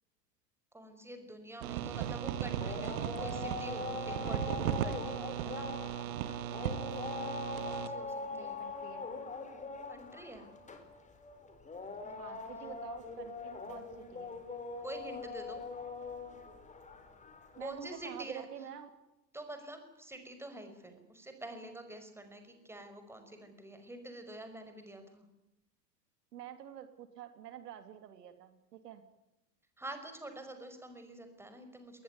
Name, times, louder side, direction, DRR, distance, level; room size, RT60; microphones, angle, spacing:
voice 1, 0.7-5.7 7.6-8.6 9.9-10.5 12.0-12.2 12.4-12.8 14.8-15.6 17.6-18.5 19.3-25.3 29.8-32.0, right 1 dB, 5° right, 7 dB, 5.4 m, -47 dB
sound 1, 1.6-7.9, right 11 dB, 55° right, 2.1 m, -37 dB
sound 2, 1.8-18.2, left 4 dB, 15° left, 4.3 m, -43 dB
voice 2, 8.3-9.0 12.2-14.4 17.6-18.9 26.3-29.0, right 10 dB, 70° right, 9 dB, 3.1 m, -48 dB
21.5 x 20.0 x 9.6 m, 0.94 s
hypercardioid pair, 115°, 50 cm